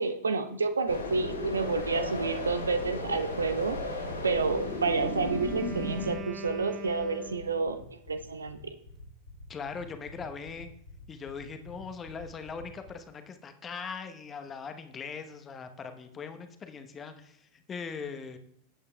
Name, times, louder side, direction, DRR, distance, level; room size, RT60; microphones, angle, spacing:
voice 1, 0.0-3.8 4.2-7.8 8.1-8.7, right 4 dB, 75° right, 9 dB, 0.8 m, -29 dB
sound 1, 0.9-6.1, left 2 dB, 80° left, 4.4 m, -35 dB
Wind instrument woodwind instrument, 4.4-7.9, right 3 dB, 20° right, 1.2 m, -43 dB
sound 2, 5.3-12.9, left 3 dB, 65° left, 2.5 m, -48 dB
voice 2, 9.5-10.7 11.1-18.4, left 5 dB, 20° left, 7 dB, 0.9 m, -40 dB
19.0 x 8.6 x 2.2 m, 0.71 s
figure-of-eight pair, 90°, 0 cm